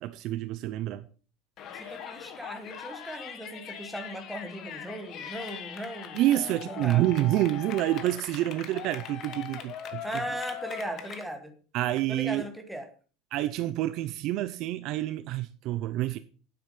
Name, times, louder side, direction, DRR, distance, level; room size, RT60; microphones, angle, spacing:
voice 1, 0.0-1.1 1.8-1.9 6.1-10.1 11.7-12.4 13.3-16.2, right 14 dB, 45° right, 0.6 m, -28 dB
Yell, 1.6-11.2, left 8 dB, 35° left, 1.3 m, -41 dB
voice 2, 1.7-7.0 10.0-11.5 12.1-12.9, right 1 dB, ahead, 1.2 m, -38 dB
9.6 x 7.8 x 5.5 m
cardioid pair, 170°, 0 cm